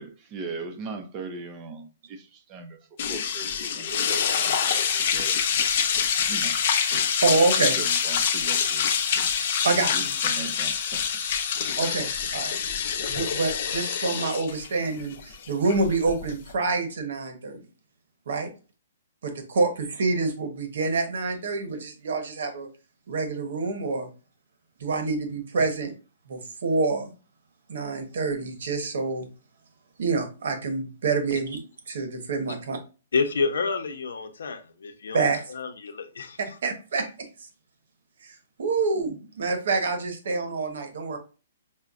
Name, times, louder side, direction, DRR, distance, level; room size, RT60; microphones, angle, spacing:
voice 1, 0.0-2.8 3.1-5.4 6.3-6.6 7.8-8.9 9.4-9.6 9.9-11.2 11.7-12.1, right 4 dB, 20° right, 0.5 m, -39 dB
sound 1, 3.0-16.5, left 7 dB, 45° left, 0.5 m, -26 dB
voice 2, 6.9-7.8 9.3-10.1 11.8-12.6 13.1-17.6 18.3-18.5 19.2-22.7 23.1-24.1 24.8-25.9 26.3-27.1 27.7-29.3 30.0-31.6 31.9-32.8 35.1-35.4 36.4-37.1 38.2-41.2, right 3 dB, 70° right, 1.0 m, -27 dB
voice 3, 33.1-36.4, left 4 dB, 85° left, 0.6 m, -29 dB
5.7 x 2.1 x 2.4 m
hypercardioid pair, 165°, 0 cm